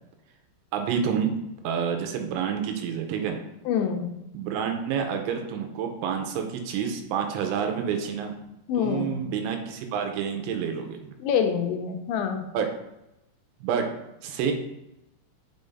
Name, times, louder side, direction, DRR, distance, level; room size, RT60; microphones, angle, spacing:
voice 1, 0.7-1.3 1.6-3.4 4.3-8.3 8.8-11.1 12.5-12.7 13.6-13.9 14.2-14.5, right 7 dB, 85° right, 4 dB, 3.0 m, -28 dB
voice 2, 3.7-4.1 8.7-9.1 11.2-12.5, left 7 dB, 85° left, 5 dB, 2.9 m, -26 dB
6.1 x 5.4 x 3.5 m, 0.89 s
omnidirectional pair, 5.5 m